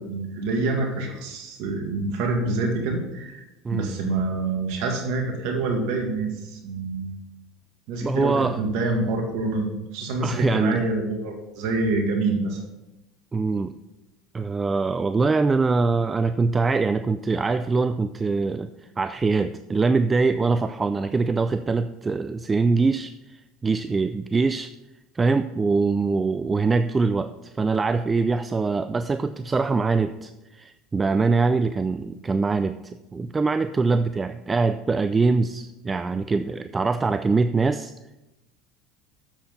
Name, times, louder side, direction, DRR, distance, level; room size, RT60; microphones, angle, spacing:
voice 1, 0.0-3.5 3.7-7.2 7.9-12.6, right 3 dB, 65° right, 2 dB, 1.9 m, -26 dB
voice 2, 8.0-8.6 10.2-10.8 13.3-13.7 14.3-18.7 19.0-24.7 25.1-32.8 33.1-37.9, right 4 dB, 20° right, 11 dB, 0.4 m, -23 dB
7.4 x 7.3 x 5.3 m, 0.98 s
hypercardioid pair, 75°, 0 cm